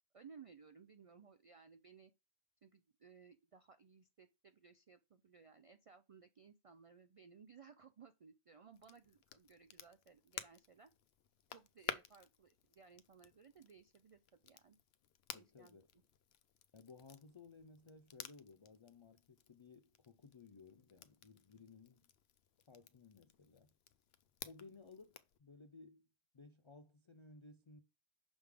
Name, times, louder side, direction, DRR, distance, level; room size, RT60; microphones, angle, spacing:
voice 1, 0.1-2.1 2.6-10.9 11.5-14.8 15.3-15.8, right 6 dB, 60° right, 0.3 m, -61 dB
Crackle, 8.7-25.4, left 10 dB, 75° left, 0.8 m, -54 dB
voice 2, 15.3-15.9 16.7-22.1 22.7-23.7 24.4-26.1 26.3-27.8, left 4 dB, 50° left, 0.3 m, -59 dB
6.2 x 3.5 x 4.9 m
omnidirectional pair, 1.1 m